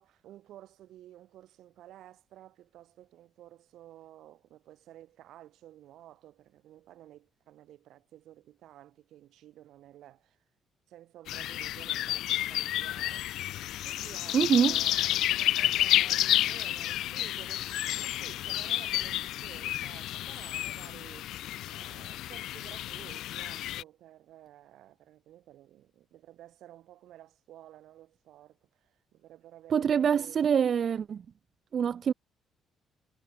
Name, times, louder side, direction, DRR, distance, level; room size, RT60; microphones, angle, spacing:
voice 1, 0.0-10.4 10.9-13.3 13.8-30.4, right 13 dB, 70° right, 3.7 m, -53 dB
sound 1, 11.3-23.8, left 14 dB, 75° left, 1.1 m, -30 dB
voice 2, 14.3-14.7 29.7-31.2 31.7-32.1, right 7 dB, 40° right, 0.6 m, -25 dB
cardioid pair, 160°, 0 cm